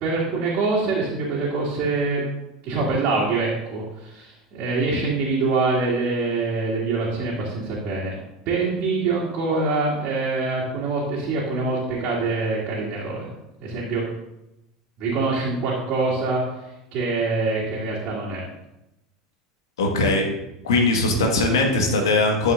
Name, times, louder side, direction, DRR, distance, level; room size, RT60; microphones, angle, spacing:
voice 1, 0.0-2.3 2.6-8.1 8.5-13.3 13.6-14.0 15.0-18.4, right 3 dB, 45° right, -7 dB, 2.5 m, -24 dB
voice 2, 19.8-20.3 20.6-22.5, left 2 dB, 65° left, 2 dB, 1.6 m, -20 dB
12.0 x 7.5 x 2.6 m, 0.91 s
figure-of-eight pair, 75°, 3 cm